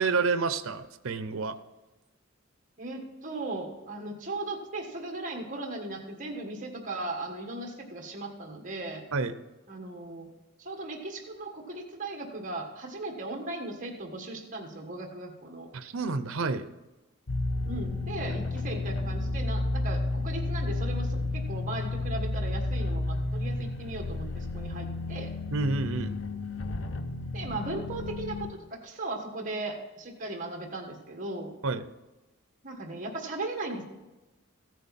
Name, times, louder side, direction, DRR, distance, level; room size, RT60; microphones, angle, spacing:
voice 1, 0.0-1.6 9.1-9.3 15.7-16.7 25.5-26.2 31.6-31.9, right 4 dB, 75° right, 12 dB, 0.7 m, -29 dB
voice 2, 2.8-9.0 9.7-10.3 10.6-15.7 17.6-25.3 27.3-31.5 32.6-33.8, right 2 dB, 40° right, 2 dB, 1.6 m, -37 dB
sound 1, 17.3-28.5, left 2 dB, 65° left, 0.8 m, -32 dB
14.5 x 9.2 x 4.2 m, 1.1 s
head